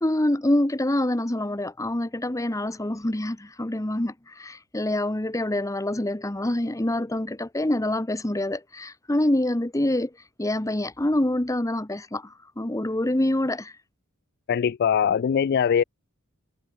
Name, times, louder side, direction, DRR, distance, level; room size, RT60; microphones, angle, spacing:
voice 1, 0.0-10.1 10.4-13.7, left 1 dB, 15° left, 1.0 m, -26 dB
voice 2, 14.5-15.8, left 7 dB, 50° left, 0.3 m, -21 dB
head